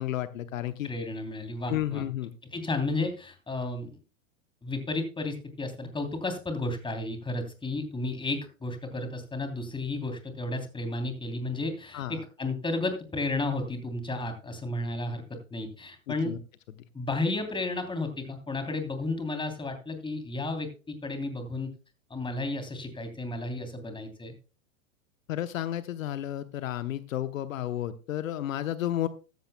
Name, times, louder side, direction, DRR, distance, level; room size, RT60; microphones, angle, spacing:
voice 1, 0.0-0.9 1.7-2.3 11.9-12.2 16.1-16.4 25.3-29.1, left 12 dB, 70° left, 12 dB, 1.0 m, -32 dB
voice 2, 0.8-2.0 2.5-4.0 4.6-16.3 16.9-21.7 22.1-24.3, left 2 dB, 10° left, 7 dB, 3.1 m, -33 dB
14.5 x 13.0 x 2.2 m, 0.33 s
hypercardioid pair, 100°, 41 cm